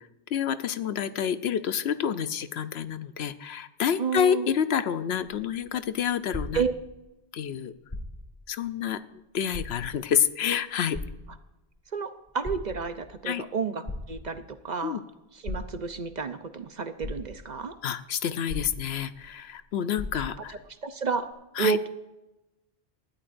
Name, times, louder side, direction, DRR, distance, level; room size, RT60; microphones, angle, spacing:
voice 1, 0.0-6.6 7.3-7.7 8.5-11.0 13.2-13.4 14.8-15.0 17.8-20.6 21.6-21.8, left 8 dB, 75° left, 12 dB, 0.9 m, -28 dB
voice 2, 4.0-4.5 6.5-6.7 11.9-15.0 15.4-17.8 20.5-21.3 21.6-21.9, right 6 dB, 50° right, 9 dB, 0.8 m, -31 dB
sound 1, 5.1-7.2 7.8-8.5 8.9-9.0 9.5-10.2 10.9-11.8 12.3-13.1 13.9-14.6 15.4-16.1 16.7-16.8 17.0-17.7 18.5-19.3 19.6-19.7 20.0-20.6 21.3-21.4, left 2 dB, 25° left, 1.6 m, -38 dB
19.5 x 12.5 x 2.6 m, 0.99 s
omnidirectional pair, 1.1 m